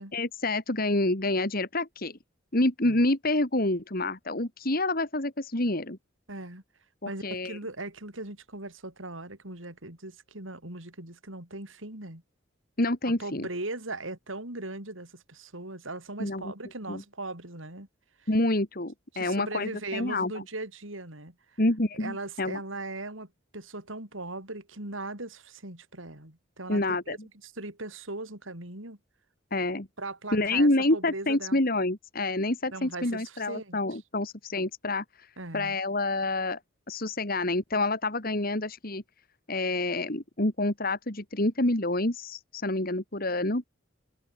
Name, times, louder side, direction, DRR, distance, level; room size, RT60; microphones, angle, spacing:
voice 1, 0.1-2.2 2.5-6.0 7.0-7.6 12.8-13.5 16.2-16.5 16.9-17.0 18.3-20.4 21.6-22.6 26.7-27.2 29.5-29.9 30.3-36.6 36.9-39.0 39.5-43.7, left 2 dB, 50° left, 2.6 m, -28 dB
voice 2, 6.3-6.6 7.0-12.2 13.2-17.9 18.2-18.3 19.1-21.6 22.0-29.0 30.0-31.6 32.7-33.8 35.4-35.8, right 2 dB, 85° right, 6.5 m, -39 dB
head